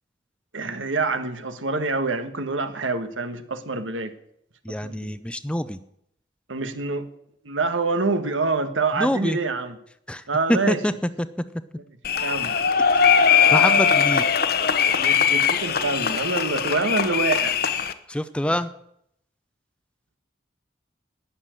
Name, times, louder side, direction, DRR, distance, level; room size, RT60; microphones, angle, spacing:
voice 1, 0.5-4.1 4.8-5.2 6.5-7.1 7.4-9.7 10.3-10.8 12.2-12.6 15.0-17.6, right 3 dB, 85° right, 1.4 m, -26 dB
voice 2, 4.6-5.8 8.9-9.4 10.1-10.2 10.5-11.4 12.9-13.1 13.5-14.4 18.1-18.7, equal, 5° left, 0.5 m, -25 dB
sound 1, 12.0-17.9, left 6 dB, 50° left, 0.8 m, -20 dB
19.5 x 7.2 x 7.6 m
head